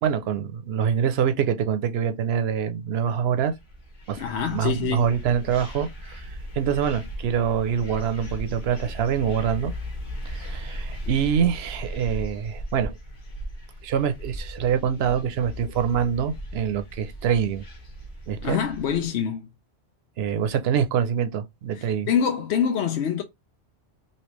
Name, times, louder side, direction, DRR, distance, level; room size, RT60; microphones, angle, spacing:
voice 1, 0.0-3.5 4.1-6.2 6.5-9.7 10.3-12.9 13.8-17.6 18.3-18.6 20.2-22.1, right 8 dB, 75° right, 0.8 m, -25 dB
sound 1, 3.4-19.1, equal, 50° left, 1.0 m, -37 dB
voice 2, 4.2-5.1 18.4-19.4 22.1-23.2, left 8 dB, 85° left, 0.9 m, -25 dB
3.2 x 2.8 x 2.9 m
omnidirectional pair, 1.1 m